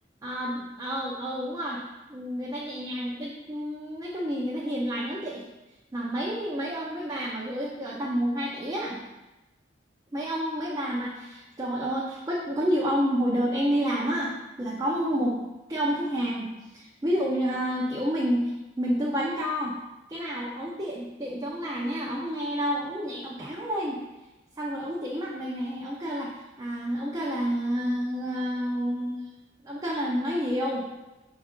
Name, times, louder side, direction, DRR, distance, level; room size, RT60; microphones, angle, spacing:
voice 1, 0.2-1.8 2.1-5.4 5.9-9.0 10.1-15.4 15.7-19.8 20.1-24.0 24.6-29.3 29.6-30.8, equal, 20° right, -4 dB, 0.5 m, -29 dB
6.0 x 2.4 x 3.6 m, 1.0 s
head